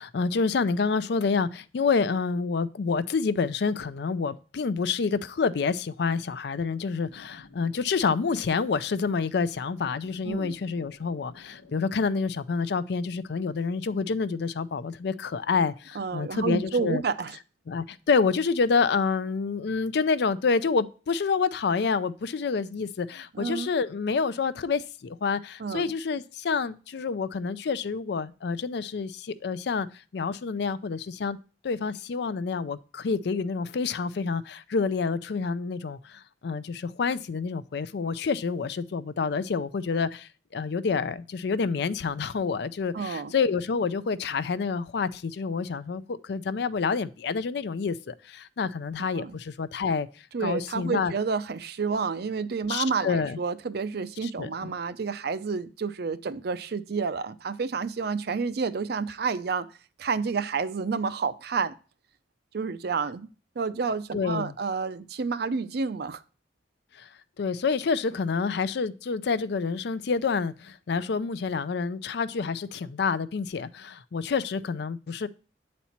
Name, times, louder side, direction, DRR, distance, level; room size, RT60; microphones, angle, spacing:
voice 1, 0.0-17.0 17.7-29.9 30.1-31.4 31.6-50.1 50.4-51.1 52.7-53.4 54.2-54.7 64.1-64.5 67.0-67.1 67.4-75.3, left 5 dB, 65° left, 0.4 m, -28 dB
sound 1, 7.0-12.1, left 2 dB, 85° left, 0.9 m, -55 dB
voice 2, 16.0-17.4 23.3-23.7 25.6-25.9 42.9-43.3 49.1-49.4 50.3-59.7 60.0-61.7 62.5-66.2, right 5 dB, 60° right, 0.5 m, -30 dB
8.2 x 4.2 x 4.3 m
head